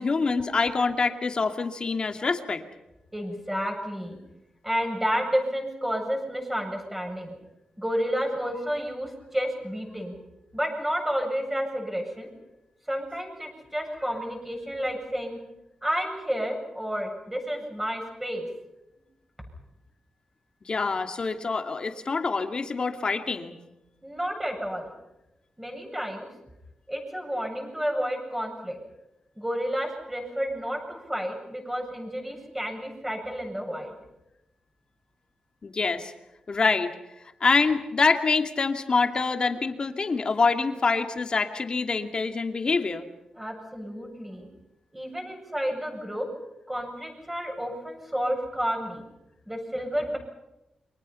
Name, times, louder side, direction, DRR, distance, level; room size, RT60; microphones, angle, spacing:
voice 1, 0.0-2.6 20.6-23.6 35.6-36.1 36.5-36.9 37.4-43.1, left 4 dB, 40° left, 5 dB, 2.5 m, -25 dB
voice 2, 3.1-4.2 4.6-7.3 7.8-10.1 10.5-12.3 12.9-15.4 15.8-18.5 24.0-24.9 25.6-26.3 26.9-28.8 29.4-34.0 43.4-44.5 44.9-46.3 46.7-49.0 49.5-50.2, equal, 10° right, 2 dB, 7.9 m, -30 dB
30.0 x 25.0 x 5.8 m, 0.92 s
wide cardioid pair, 120°, 2 cm